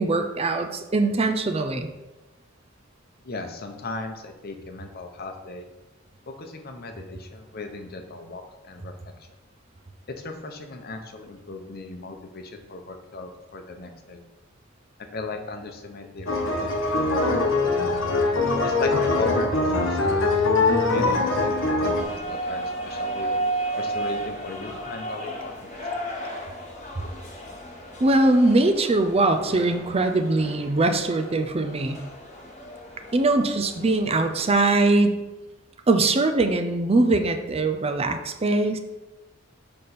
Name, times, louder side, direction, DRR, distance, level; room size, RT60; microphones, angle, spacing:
voice 1, 0.0-1.9 28.0-32.0 33.1-35.2 35.9-38.8, right 2 dB, 30° right, 6 dB, 0.5 m, -21 dB
voice 2, 3.2-5.7 6.3-9.3 10.1-14.2 15.0-18.1 18.6-20.2 20.8-23.3 23.7-26.2, left 2 dB, 50° left, 5 dB, 0.8 m, -37 dB
sound 1, 16.3-22.0, left 3 dB, 75° left, 1.2 m, -22 dB
sound 2, 22.0-34.7, right 2 dB, 35° left, 1.2 m, -34 dB
6.8 x 5.2 x 4.3 m, 1.0 s
head